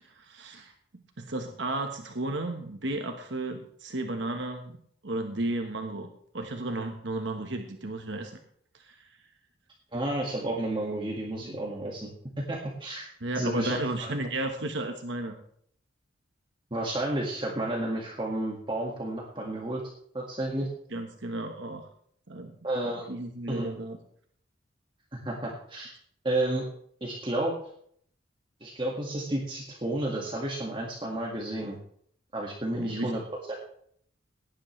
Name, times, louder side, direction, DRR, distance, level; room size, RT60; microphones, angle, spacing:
voice 1, 0.0-4.8 5.0-6.1 6.3-8.4 8.7-9.1 13.2-15.3 20.9-21.9 22.3-22.5 23.1-24.0 32.7-33.1, right 2 dB, 75° right, 4 dB, 1.3 m, -33 dB
voice 2, 9.9-12.1 12.5-13.1 13.4-14.1 16.7-19.8 20.1-20.7 22.6-23.1 23.5-23.7 25.1-25.9 26.2-26.6 27.0-27.5 28.6-31.8 32.3-33.2 33.5-33.6, right 1 dB, 25° right, -2 dB, 1.9 m, -31 dB
17.5 x 10.5 x 3.3 m, 0.63 s
head